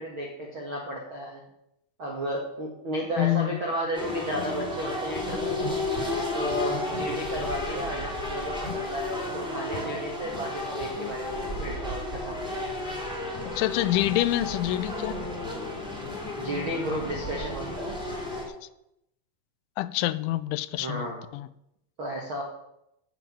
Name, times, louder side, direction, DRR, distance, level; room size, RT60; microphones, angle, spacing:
voice 1, 0.0-1.4 2.0-5.8 6.3-12.4 16.3-18.0 20.8-21.2 22.0-22.4, equal, 60° right, -2 dB, 1.3 m, -33 dB
voice 2, 3.2-3.6 13.5-15.2 19.8-21.1 21.3-21.5, left 15 dB, 90° left, 15 dB, 3.0 m, -26 dB
sound 1, 3.9-18.4, left 2 dB, ahead, 2.8 m, -32 dB
9.4 x 8.5 x 8.6 m, 0.82 s
omnidirectional pair, 5.4 m